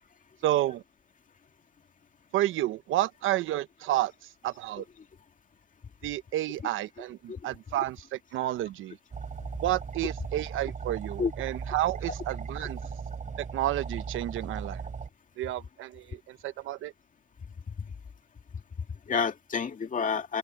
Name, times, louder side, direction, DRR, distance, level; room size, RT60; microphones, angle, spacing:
voice 1, 0.4-0.8 2.3-4.1 4.4-4.8 6.0-9.0 9.6-12.8 13.5-14.9 15.4-16.9, right 14 dB, 85° right, 1.0 m, -30 dB
sound 1, 9.1-15.1, right 5 dB, 40° right, 4.1 m, -37 dB
voice 2, 18.9-20.4, left 5 dB, 40° left, 2.2 m, -30 dB
open air
cardioid pair, 90°, 20 cm